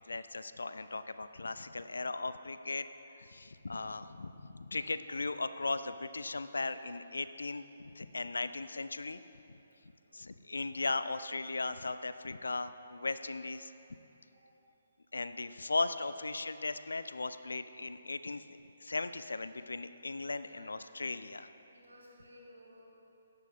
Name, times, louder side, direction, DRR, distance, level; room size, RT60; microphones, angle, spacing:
voice 1, 0.1-2.9 3.1-9.2 10.1-13.7 15.1-18.4 18.8-21.5, left 3 dB, 75° left, 13 dB, 0.5 m, -37 dB
voice 2, 10.1-10.5 14.3-14.4 15.0-15.1 20.4-20.9 21.7-22.8, equal, 80° right, -4 dB, 2.9 m, -58 dB
13.0 x 10.5 x 3.6 m, 2.9 s
figure-of-eight pair, 140°, 0 cm